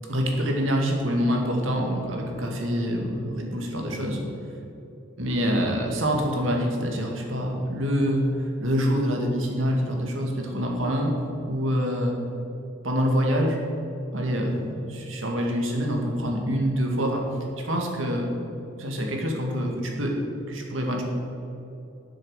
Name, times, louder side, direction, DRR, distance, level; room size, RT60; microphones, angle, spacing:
voice 1, 0.1-4.2 5.2-11.1 11.5-12.1 12.8-13.6 14.1-17.2 17.6-18.3 18.8-20.1 20.5-21.0, equal, 80° right, 1 dB, 2.0 m, -26 dB
11.0 x 7.6 x 6.5 m, 2.9 s
head